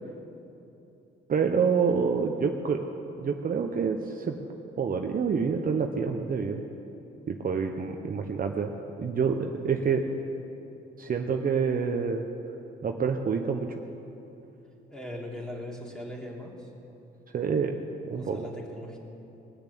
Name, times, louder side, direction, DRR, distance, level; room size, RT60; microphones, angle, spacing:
voice 1, 1.3-2.9 3.2-4.4 4.8-6.7 7.3-8.7 9.0-10.1 11.0-12.3 12.8-13.7 17.3-17.8 18.0-18.5, right 5 dB, 45° right, 4 dB, 0.9 m, -27 dB
voice 2, 14.9-16.7 18.1-19.0, left 1 dB, 5° left, -2 dB, 3.1 m, -39 dB
20.5 x 7.0 x 8.5 m, 2.9 s
cardioid pair, 90°, 20 cm